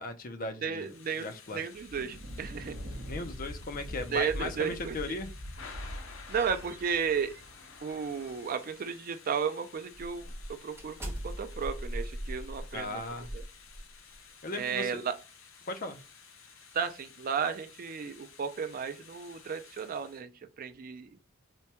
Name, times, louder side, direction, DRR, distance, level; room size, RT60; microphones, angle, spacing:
voice 1, 0.0-0.9 1.2-1.6 3.1-5.3 12.7-13.3 14.4-15.0 15.7-16.0, left 2 dB, 45° left, 0.5 m, -37 dB
voice 2, 0.6-2.7 4.1-5.0 6.3-7.3 7.8-10.3 10.6-11.0 11.2-13.0 13.3-13.4 14.5-15.1 16.7-20.3 20.6-21.1, right 6 dB, 45° right, 0.4 m, -33 dB
Thunder / Rain, 0.7-20.2, left 6 dB, 75° left, 0.7 m, -53 dB
Thunder, 1.7-8.4, equal, 65° right, 1.0 m, -43 dB
sound 1, 6.0-8.8 9.3-9.5 9.9-14.2, equal, 10° right, 0.8 m, -42 dB
4.4 x 2.2 x 2.8 m
head